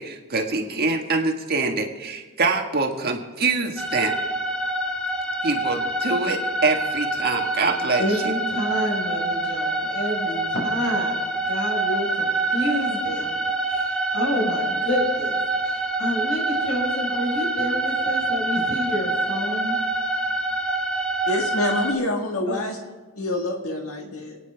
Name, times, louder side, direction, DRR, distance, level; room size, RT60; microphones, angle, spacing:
voice 1, 0.0-4.1 5.4-8.3, right 3 dB, 50° right, 2 dB, 1.6 m, -25 dB
sound 1, 3.8-21.9, right 2 dB, 5° left, 1.1 m, -26 dB
voice 2, 8.0-11.1 11.5-13.3 13.7-13.8 14.1-15.4 16.0-19.8 22.5-22.6, left 1 dB, 60° left, 0 dB, 4.8 m, -28 dB
voice 3, 21.3-22.8 23.2-24.4, left 1 dB, 85° left, 2 dB, 1.7 m, -26 dB
29.0 x 9.7 x 3.5 m, 1.3 s
head